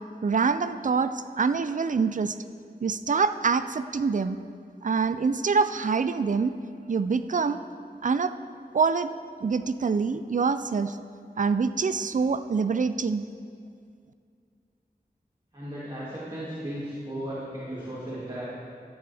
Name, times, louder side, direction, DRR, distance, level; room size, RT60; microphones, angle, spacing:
voice 1, 0.2-2.4 2.8-4.4 4.8-6.5 6.9-7.6 8.0-8.3 8.7-9.1 9.4-11.0 11.4-13.2, right 5 dB, 50° right, 11 dB, 0.4 m, -25 dB
voice 2, 15.5-18.5, right 1 dB, 30° right, -9 dB, 2.4 m, -35 dB
13.5 x 9.7 x 3.5 m, 2.2 s
wide cardioid pair, 65°, 17 cm